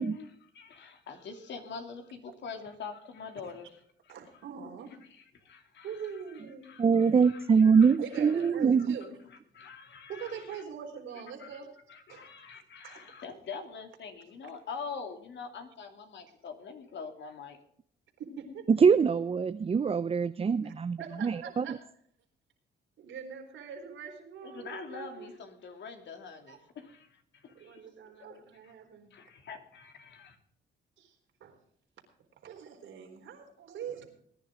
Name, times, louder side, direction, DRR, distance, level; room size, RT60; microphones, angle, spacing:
voice 1, 0.0-3.7 4.0-4.4 5.3-6.2 6.6-8.5 9.3-10.6 11.4-11.6 11.9-17.6 24.4-27.8 28.2-28.7 29.1-30.4, left 5 dB, 65° left, 5 dB, 2.9 m, -45 dB
voice 2, 4.1-4.9 5.8-6.7 8.0-9.2 10.1-11.7 12.1-12.3 12.8-13.0 18.2-18.7 20.6-20.7 21.0-21.8 23.0-25.3 26.5-26.6 27.5-29.1 31.0-31.2 31.4-31.6 32.4-34.0, right 7 dB, 75° right, 3 dB, 4.0 m, -43 dB
voice 3, 6.8-9.0 18.7-21.8, right 6 dB, 30° right, 12 dB, 0.6 m, -24 dB
20.0 x 10.5 x 3.7 m, 0.64 s
cardioid pair, 90°, 20 cm